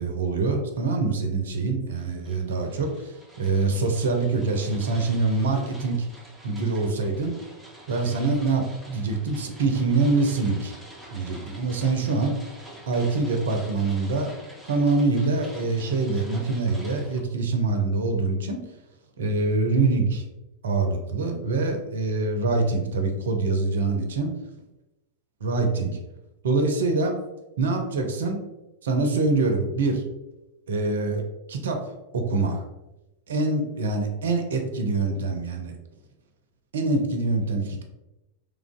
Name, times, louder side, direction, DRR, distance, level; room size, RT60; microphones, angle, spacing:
voice 1, 0.0-6.0 6.4-7.4 7.9-10.7 11.1-12.4 12.9-14.3 14.7-18.6 19.2-20.2 20.6-24.3 25.4-26.0 26.4-27.2 27.6-28.4 28.8-30.0 30.7-31.2 31.5-31.8 32.1-32.6 33.3-35.7 36.7-37.8, right 3 dB, 65° right, 4 dB, 0.6 m, -25 dB
sound 1, 2.0-17.2, right 1 dB, 5° right, 0.8 m, -47 dB
3.2 x 2.5 x 3.6 m, 0.98 s
figure-of-eight pair, 90°, 0 cm